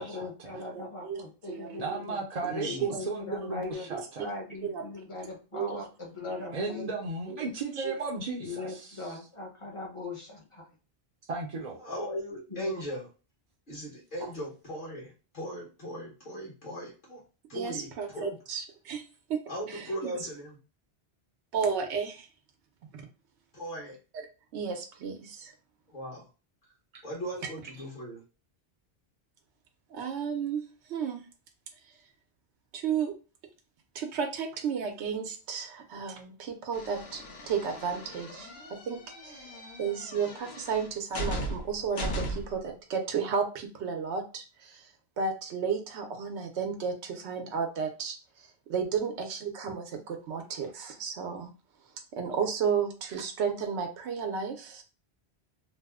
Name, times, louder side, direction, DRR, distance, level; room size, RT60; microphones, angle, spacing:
voice 1, 0.0-2.2 2.7-3.9 4.2-6.9 8.4-10.7 12.5-12.7, left 3 dB, 30° left, -1 dB, 0.9 m, -40 dB
voice 2, 1.0-2.0 2.6-2.9 3.9-4.3 4.6-4.8 5.5-5.8 6.5-6.9 7.3-7.4 7.8-7.9 17.5-19.0 19.3-19.4 19.7-20.1 21.5-22.3 22.9-23.1 24.5-25.5 26.9-27.0 29.9-30.6 30.9-31.2 32.7-33.1 33.9-44.9 45.2-51.5 52.1-54.8, right 6 dB, 80° right, 4 dB, 0.9 m, -33 dB
voice 3, 1.8-4.2 6.5-9.1 11.3-11.9, right 3 dB, 45° right, -2 dB, 0.6 m, -35 dB
voice 4, 2.5-3.0 11.8-13.1 13.7-17.2 17.5-18.4 19.5-20.6 23.5-24.0 25.9-26.2 27.0-28.2, equal, 50° left, -5 dB, 1.2 m, -38 dB
sound 1, 36.7-42.6, equal, 70° left, 1.0 m, -38 dB
2.9 x 2.0 x 3.4 m, 0.33 s
omnidirectional pair, 1.1 m